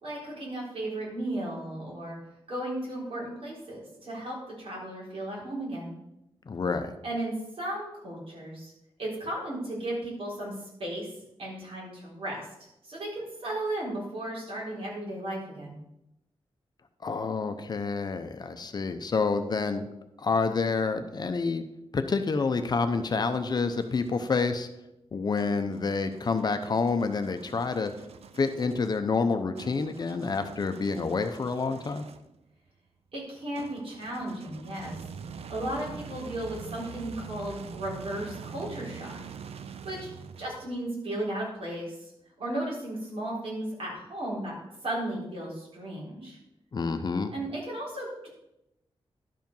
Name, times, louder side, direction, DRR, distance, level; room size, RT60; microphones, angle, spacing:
voice 1, 0.0-2.2 2.5-5.9 7.0-8.7 9.0-11.1 11.4-12.5 12.8-15.8 33.1-35.0 35.5-39.1 39.8-40.1 40.4-42.1 42.4-44.5 44.8-46.4 47.3-48.3, right 1 dB, 70° right, -4 dB, 3.8 m, -35 dB
voice 2, 6.5-6.9 17.0-19.9 20.2-21.6 21.9-24.7 25.1-27.9 28.4-32.0 46.7-47.3, left 4 dB, 45° left, 8 dB, 0.7 m, -28 dB
sound 1, 22.8-24.4 25.4-32.4 33.5-40.8, right 6 dB, 90° right, 0.5 m, -45 dB
11.5 x 5.1 x 5.4 m, 0.87 s
wide cardioid pair, 145°, 10 cm